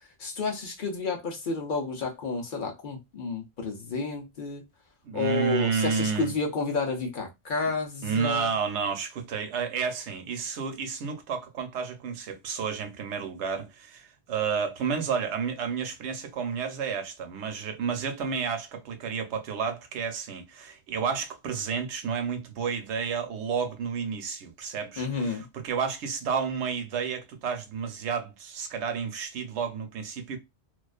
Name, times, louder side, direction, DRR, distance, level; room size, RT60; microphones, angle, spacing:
voice 1, 0.2-4.6 5.1-8.5 25.0-25.5, left 4 dB, 55° left, 0.7 m, -30 dB
voice 2, 5.0-6.3 8.0-30.4, right 6 dB, 85° right, 0.9 m, -31 dB
2.4 x 2.2 x 2.3 m
omnidirectional pair, 1.1 m